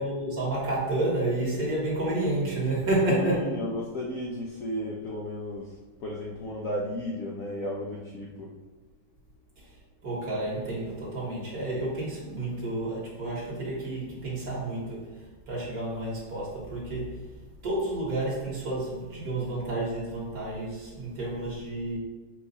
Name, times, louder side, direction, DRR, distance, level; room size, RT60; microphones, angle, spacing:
voice 1, 0.0-3.5 9.6-9.8 10.0-22.0, right 2 dB, 55° right, -6 dB, 1.8 m, -30 dB
voice 2, 3.1-8.5, left 1 dB, 70° left, -2 dB, 0.8 m, -34 dB
4.6 x 2.4 x 4.0 m, 1.2 s
omnidirectional pair, 2.0 m